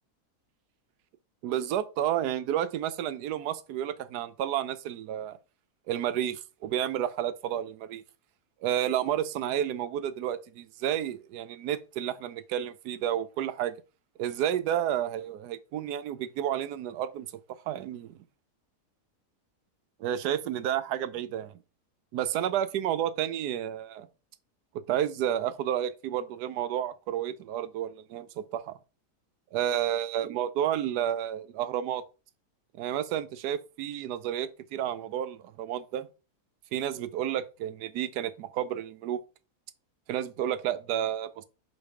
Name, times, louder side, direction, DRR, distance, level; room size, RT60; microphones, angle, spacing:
voice 1, 1.4-5.4 5.9-8.0 8.6-13.7 14.2-17.3 17.7-18.2 20.0-21.5 22.1-24.1 24.7-28.8 29.5-32.0 32.8-36.1 36.7-39.2 40.1-41.4, right 10 dB, 85° right, 1.2 m, -31 dB
5.3 x 4.0 x 4.9 m
omnidirectional pair, 1.7 m